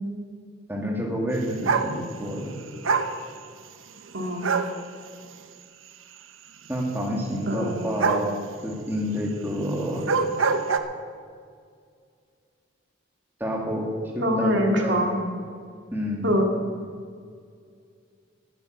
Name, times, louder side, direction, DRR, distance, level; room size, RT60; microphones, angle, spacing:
voice 1, 0.7-2.6 6.7-8.4 8.6-10.0 13.4-13.9 14.1-15.0 15.9-16.3, equal, 10° right, -1 dB, 2.4 m, -28 dB
sound 1, 1.6-1.9 2.8-3.1 4.4-4.7 8.0-8.3 9.9-10.8, right 5 dB, 85° right, 0.9 m, -23 dB
voice 2, 4.1-4.5 7.5-8.0 14.2-15.2 16.2-16.5, equal, 65° right, 1 dB, 2.4 m, -24 dB
11.5 x 10.0 x 8.0 m, 2.1 s
head